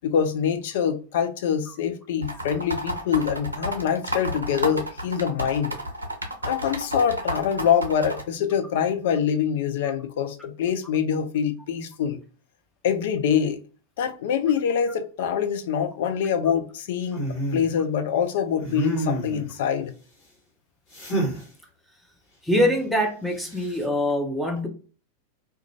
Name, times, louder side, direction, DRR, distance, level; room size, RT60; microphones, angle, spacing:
voice 1, 0.0-5.8 6.5-12.2 12.8-13.6 14.0-19.9, left 8 dB, 55° left, 0.4 m, -25 dB
sound 1, 2.2-8.2, right 1 dB, 80° right, 0.5 m, -31 dB
sound 2, 17.1-17.7 18.6-19.5 20.9-21.4 23.4-23.8, right 2 dB, 35° left, 1.3 m, -28 dB
voice 2, 22.4-24.7, left 1 dB, ahead, 0.6 m, -23 dB
2.4 x 2.2 x 2.8 m
figure-of-eight pair, 90°, 0 cm